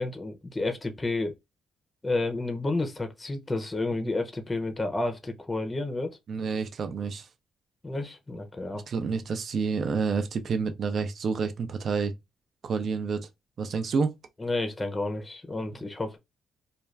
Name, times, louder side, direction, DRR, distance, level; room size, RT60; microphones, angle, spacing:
voice 1, 0.0-1.3 2.0-6.2 7.8-8.9 14.4-16.2, left 2 dB, 20° left, 0.6 m, -30 dB
voice 2, 6.3-7.3 8.9-12.1 12.6-13.3 13.6-14.1, right 5 dB, 50° right, 0.5 m, -29 dB
2.4 x 2.2 x 3.2 m
cardioid pair, 90°, 0 cm